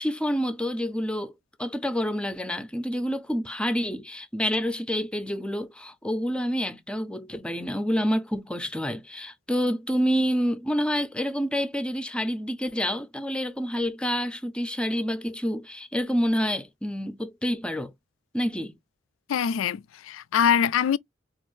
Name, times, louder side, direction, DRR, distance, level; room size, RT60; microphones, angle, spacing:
voice 1, 0.0-1.3 1.6-17.9 18.3-18.8, equal, 5° left, 0.5 m, -28 dB
voice 2, 19.3-21.0, left 8 dB, 80° left, 0.3 m, -23 dB
4.4 x 2.4 x 3.1 m
head